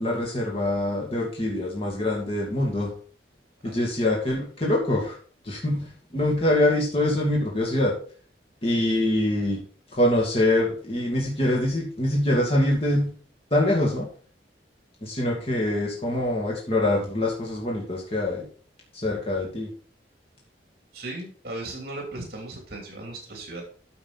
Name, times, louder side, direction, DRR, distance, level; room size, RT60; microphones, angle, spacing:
voice 1, 0.0-2.9 3.6-5.1 5.5-5.9 6.1-7.9 8.6-9.6 9.9-13.1 13.5-14.1 15.0-18.4 19.0-19.7, left 1 dB, 35° left, -3 dB, 2.3 m, -24 dB
voice 2, 20.9-23.6, right 2 dB, 55° right, 0 dB, 3.0 m, -37 dB
9.5 x 7.1 x 4.2 m, 0.43 s
head